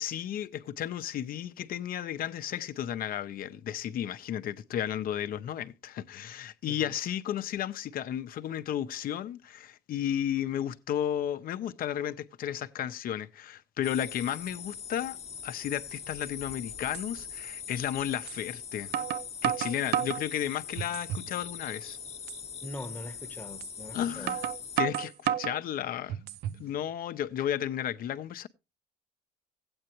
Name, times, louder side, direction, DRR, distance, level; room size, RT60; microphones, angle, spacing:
voice 1, 0.0-18.9 19.4-22.0 23.9-24.4 24.8-26.2 26.6-28.5, left 10 dB, 60° left, 0.7 m, -33 dB
sound 1, 13.8-24.8, left 7 dB, 40° left, 1.0 m, -42 dB
sound 2, 16.4-16.5 16.9-17.1 18.3-18.4 18.9-20.3 20.8-21.3 21.7-21.8 22.3-22.4 23.6-23.7 24.3-25.6 26.1-26.6, right 10 dB, 75° right, 0.5 m, -31 dB
voice 2, 22.6-24.3, left 1 dB, 10° left, 0.9 m, -42 dB
15.0 x 8.8 x 2.9 m
cardioid pair, 110°, 17 cm